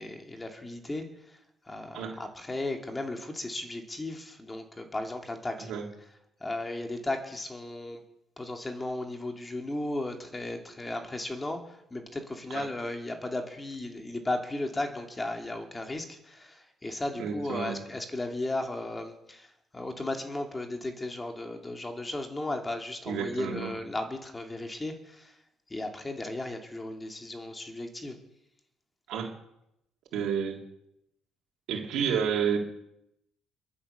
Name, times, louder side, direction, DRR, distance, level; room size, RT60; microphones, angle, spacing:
voice 1, 0.0-1.4 1.7-5.7 6.4-8.0 8.4-25.4 25.7-28.2, left 2 dB, 15° left, 4 dB, 2.7 m, -35 dB
voice 2, 17.2-17.8 23.1-23.7 29.1-29.3 30.1-30.6 31.7-32.6, right 7 dB, 75° right, 1 dB, 3.6 m, -30 dB
23.0 x 8.3 x 6.9 m, 0.81 s
cardioid pair, 90°, 0 cm